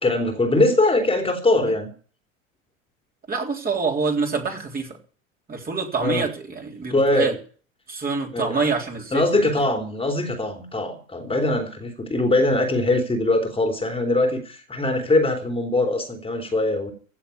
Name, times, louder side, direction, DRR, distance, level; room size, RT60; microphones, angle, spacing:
voice 1, 0.0-1.9 6.0-6.2 6.9-7.3 8.3-8.7 9.1-16.9, left 2 dB, 15° left, 4 dB, 3.3 m, -22 dB
voice 2, 3.3-5.0 5.5-7.3 7.9-9.7, right 4 dB, 20° right, 1 dB, 3.8 m, -26 dB
16.5 x 7.3 x 9.8 m, 0.42 s
figure-of-eight pair, 75°, 41 cm